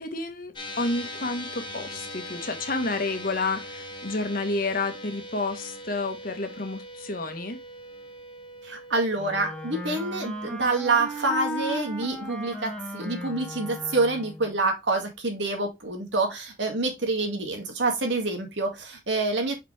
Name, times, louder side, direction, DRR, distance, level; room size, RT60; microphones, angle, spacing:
voice 1, 0.0-7.6, left 3 dB, 50° left, 1.3 m, -30 dB
sound 1, 0.6-13.1, left 1 dB, 25° left, 1.3 m, -42 dB
voice 2, 8.6-19.5, right 3 dB, 80° right, 2.0 m, -27 dB
Wind instrument woodwind instrument, 9.2-14.5, equal, 5° left, 1.1 m, -36 dB
5.7 x 5.0 x 3.3 m
head